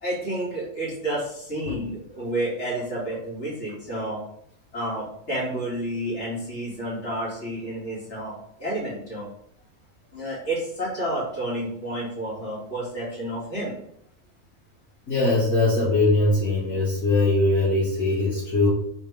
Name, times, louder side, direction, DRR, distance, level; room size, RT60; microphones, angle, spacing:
voice 1, 0.0-4.2 4.7-9.3 10.1-13.8, right 1 dB, 45° left, -6 dB, 3.0 m, -30 dB
voice 2, 15.1-18.7, left 2 dB, 65° left, -9 dB, 2.6 m, -21 dB
6.5 x 4.5 x 3.5 m, 0.72 s
omnidirectional pair, 1.6 m